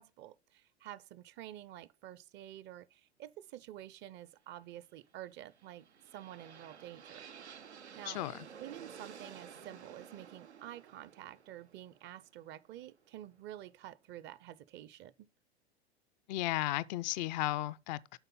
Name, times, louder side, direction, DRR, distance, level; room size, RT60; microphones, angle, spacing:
voice 1, 0.0-5.9 6.1-7.3 8.0-8.2 8.6-15.3, right 12 dB, 35° right, 0.6 m, -49 dB
sound 1, 5.4-13.3, right 7 dB, 90° right, 0.6 m, -53 dB
voice 2, 8.1-8.4 16.3-18.2, left 16 dB, 45° left, 0.4 m, -34 dB
7.9 x 5.5 x 5.4 m
figure-of-eight pair, 90°, 33 cm